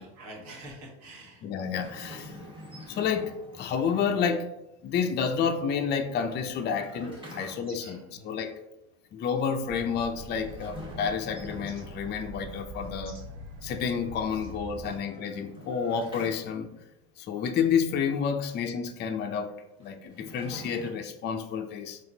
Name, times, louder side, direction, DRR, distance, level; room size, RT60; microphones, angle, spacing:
voice 1, 0.0-1.4 7.3-8.3, right 1 dB, 55° right, 0 dB, 1.3 m, -47 dB
voice 2, 1.4-2.4 2.9-4.5 4.8-8.6 9.1-13.2 13.6-16.7 17.2-19.5 19.8-22.0, left 6 dB, 30° left, 6 dB, 0.4 m, -30 dB
sound 1, 1.7-4.0 5.9-7.9 10.4-12.4 14.8-17.0 19.8-20.9, equal, 15° right, 1.4 m, -46 dB
sound 2, 7.6-8.1 9.3-9.4 10.0-10.5 11.6-11.9 13.0-13.3 14.3-14.5, right 3 dB, 35° right, 1.1 m, -53 dB
sound 3, 9.6-15.0, right 1 dB, 85° right, 0.7 m, -43 dB
4.2 x 2.9 x 2.7 m, 0.88 s
supercardioid pair, 95°, 34 cm